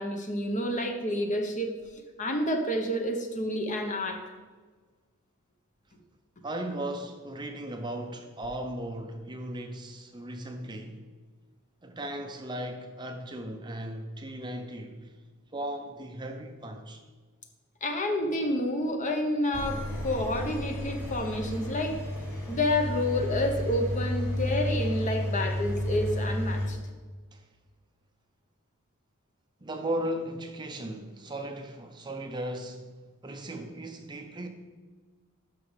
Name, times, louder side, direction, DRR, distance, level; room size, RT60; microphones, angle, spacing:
voice 1, 0.0-1.7 2.2-4.2 17.8-22.0 22.5-26.8, left 1 dB, 35° left, 0.9 m, -29 dB
voice 2, 6.4-11.0 11.8-15.1 15.5-17.0 27.3-27.5 29.6-32.9 33.2-34.5, right 1 dB, 20° right, 0.6 m, -36 dB
Engine, 19.5-26.7, left 1 dB, 15° left, 1.8 m, -32 dB
11.5 x 6.1 x 3.3 m
head